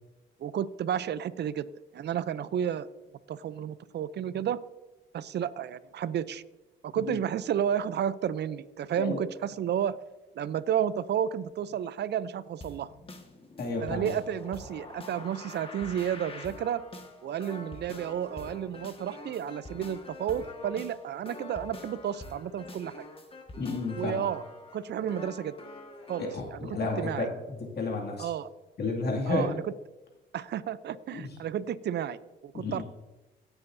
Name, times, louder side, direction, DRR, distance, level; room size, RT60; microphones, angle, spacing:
voice 1, 0.4-1.7 1.9-2.9 3.3-4.6 5.1-6.4 6.8-10.0 10.4-12.9 13.8-16.8 17.2-23.0 24.0-24.4 24.7-25.5 26.1-26.2 26.5-27.3 28.2-28.5 29.3-29.7 30.3-32.2 32.4-32.8, right 9 dB, 55° right, 16 dB, 0.5 m, -31 dB
sound 1, 12.6-26.4, left 2 dB, 25° left, 1.6 m, -45 dB
voice 2, 13.6-14.1 23.6-24.2 26.2-27.3 27.6-28.3 28.8-29.5 31.1-31.2 32.5-32.8, left 3 dB, 55° left, -1 dB, 2.3 m, -31 dB
16.5 x 8.1 x 2.7 m, 1.1 s
cardioid pair, 90°, 20 cm